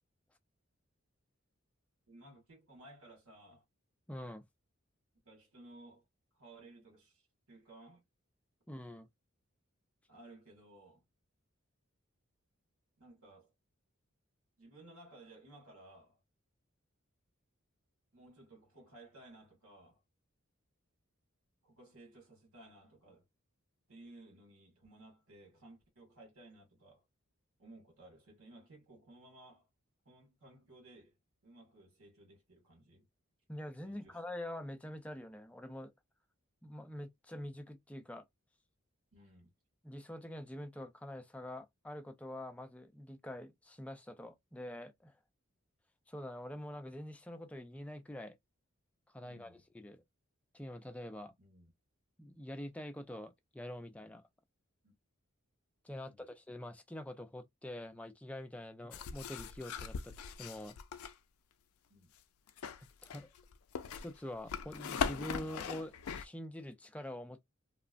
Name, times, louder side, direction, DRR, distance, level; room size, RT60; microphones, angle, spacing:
voice 1, 2.1-3.6 5.2-6.1 6.3-7.2 7.5-8.0 10.1-11.0 13.0-13.5 14.6-16.2 18.1-20.0 21.6-23.3 23.9-27.1 27.6-29.7 30.0-31.2 31.4-33.1 33.8-34.2 39.1-39.5 49.2-49.6 51.4-51.7 54.8-54.9 56.0-56.2 61.9-62.1, right 2 dB, 90° right, 1.7 m, -57 dB
voice 2, 4.1-4.4 8.7-9.1 33.5-35.9 36.6-38.2 39.8-45.1 46.1-48.4 49.1-50.0 50.5-51.3 52.2-54.2 55.8-60.8 63.0-63.3 63.9-67.4, left 1 dB, 5° left, 0.3 m, -45 dB
sound 1, 58.9-61.1 62.5-66.2, left 6 dB, 80° left, 0.4 m, -40 dB
3.0 x 2.0 x 2.4 m
head